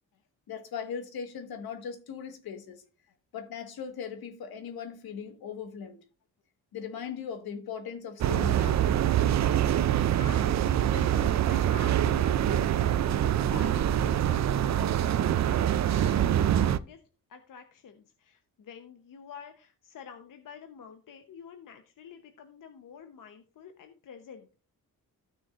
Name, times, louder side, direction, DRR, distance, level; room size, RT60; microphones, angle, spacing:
voice 1, 0.5-2.8 3.3-6.0 6.7-8.9, left 7 dB, 75° left, 1.6 m, -39 dB
sound 1, 8.2-16.8, right 10 dB, 50° right, 0.5 m, -25 dB
voice 2, 10.2-17.0 17.3-24.6, left 6 dB, 60° left, 1.0 m, -47 dB
15.0 x 6.3 x 2.5 m
cardioid pair, 105°, 37 cm